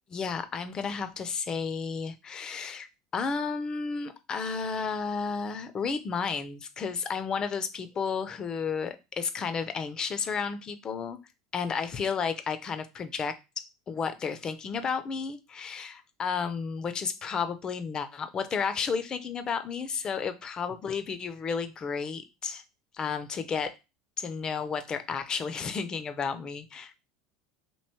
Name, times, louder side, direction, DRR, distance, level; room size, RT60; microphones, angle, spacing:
voice 1, 0.1-2.9 3.1-11.2 11.5-22.6 22.9-23.7 24.2-26.9, left 5 dB, 35° left, 10 dB, 0.5 m, -32 dB
3.1 x 2.9 x 4.2 m, 0.27 s
hypercardioid pair, 85°, 2 cm